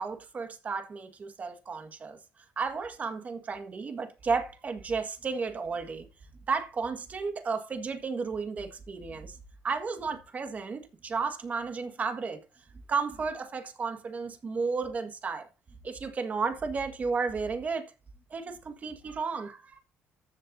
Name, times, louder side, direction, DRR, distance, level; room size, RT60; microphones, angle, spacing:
voice 1, 0.0-6.1 6.5-9.4 9.6-12.4 12.9-15.5 15.8-17.9 18.3-19.8, right 4 dB, 35° right, 1.7 m, -33 dB
13.5 x 7.6 x 2.7 m
cardioid pair, 110°, 5 cm